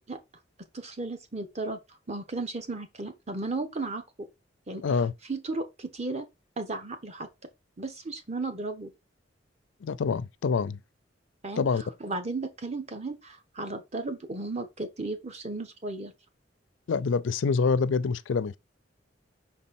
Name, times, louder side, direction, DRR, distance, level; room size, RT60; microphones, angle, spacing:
voice 1, 0.7-1.8 2.1-4.3 4.7-4.8 5.3-6.3 6.6-7.3 7.8-8.9 11.4-11.6 12.0-16.1, right 3 dB, 35° right, 1.1 m, -34 dB
voice 2, 4.8-5.1 9.8-10.8 11.6-11.8 16.9-18.6, left 5 dB, 80° left, 0.4 m, -26 dB
5.9 x 4.2 x 4.2 m
head